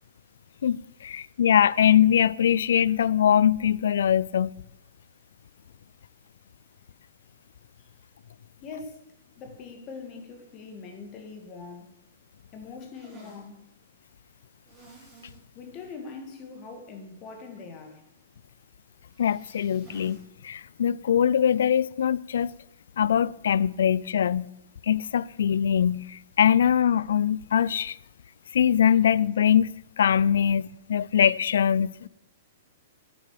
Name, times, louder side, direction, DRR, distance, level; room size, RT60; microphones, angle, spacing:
voice 1, 0.6-4.5 19.2-22.5 23.0-24.5 24.8-28.0 28.5-29.7 30.0-32.1, left 9 dB, 80° left, 0.3 m, -22 dB
voice 2, 8.6-9.0 9.4-11.9 12.5-13.6 15.5-18.0, left 4 dB, 30° left, 1.9 m, -42 dB
sound 1, 12.9-13.5 14.6-15.4 15.8-15.9 16.3-16.4 19.0-20.2 20.6-20.7 22.3-22.6, right 3 dB, 15° right, 3.9 m, -53 dB
9.3 x 7.3 x 4.9 m
hypercardioid pair, 155°, 0 cm